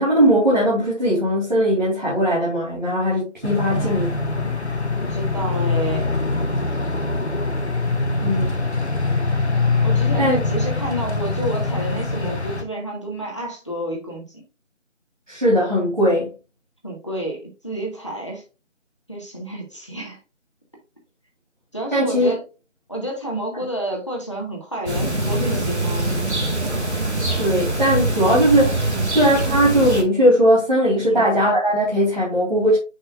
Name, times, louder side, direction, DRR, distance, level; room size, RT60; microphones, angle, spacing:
voice 1, 0.0-4.1 8.2-8.6 10.2-10.4 15.3-16.3 21.9-22.3 27.4-32.8, equal, 40° right, 2.7 m, -19 dB
sound 1, 3.4-12.6, left 3 dB, 60° left, 1.1 m, -23 dB
voice 2, 3.7-4.6 5.0-6.1 9.8-14.4 16.8-18.4 19.1-20.2 21.7-22.4 22.9-26.2 28.9-29.1 31.1-31.3, right 1 dB, 25° left, 1.4 m, -30 dB
sound 2, 24.9-30.0, right 2 dB, 60° right, 2.1 m, -23 dB
7.5 x 5.4 x 2.3 m
figure-of-eight pair, 170°, 37 cm